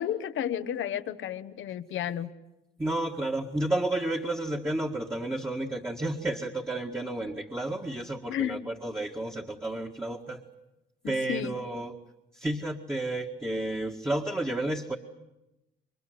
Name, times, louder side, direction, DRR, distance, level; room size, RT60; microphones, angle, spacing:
voice 1, 0.0-2.3 8.3-8.7 11.0-11.5, left 10 dB, 75° left, 12 dB, 1.2 m, -32 dB
voice 2, 2.8-10.4 11.1-11.9 12.4-15.0, right 1 dB, 10° right, 0 dB, 1.9 m, -31 dB
28.0 x 23.0 x 7.9 m, 0.94 s
cardioid pair, 90°, 20 cm